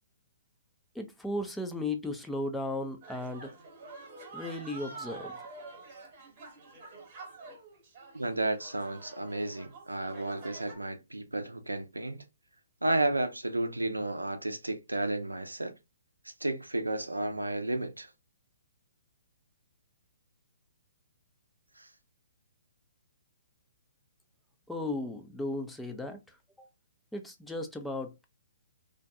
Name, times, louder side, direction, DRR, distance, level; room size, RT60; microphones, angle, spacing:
voice 1, 0.9-3.5 4.3-5.4 24.7-26.7 27.1-28.2, left 2 dB, 5° left, 0.4 m, -36 dB
sound 1, 3.0-10.8, right 3 dB, 40° right, 1.0 m, -47 dB
voice 2, 8.1-12.2 12.8-15.7 16.4-18.1 21.8-21.9, right 2 dB, 85° right, 0.5 m, -32 dB
2.5 x 2.1 x 2.6 m
figure-of-eight pair, 125°, 0 cm